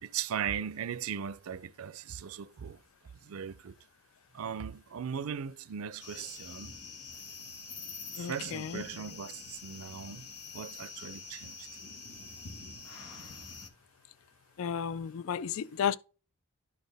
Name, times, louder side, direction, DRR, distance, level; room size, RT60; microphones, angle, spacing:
voice 1, 0.0-2.8 3.2-3.7 4.3-6.7 8.1-10.3 10.5-11.7, right 8 dB, 75° right, 0.5 m, -38 dB
sound 1, 6.0-13.7, left 4 dB, 90° left, 1.3 m, -46 dB
voice 2, 8.2-8.8 14.6-16.0, left 8 dB, 65° left, 0.3 m, -33 dB
12.0 x 4.3 x 3.3 m
head